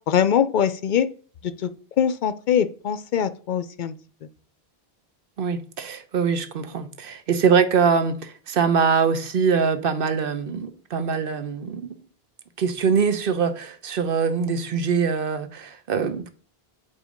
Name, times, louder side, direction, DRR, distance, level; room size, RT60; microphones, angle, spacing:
voice 1, 0.1-1.1 1.4-1.7 2.0-3.9, left 8 dB, 55° left, 0.7 m, -22 dB
voice 2, 5.4-12.0 12.6-16.3, right 6 dB, 65° right, 1.0 m, -23 dB
8.2 x 2.8 x 5.0 m
omnidirectional pair, 1.0 m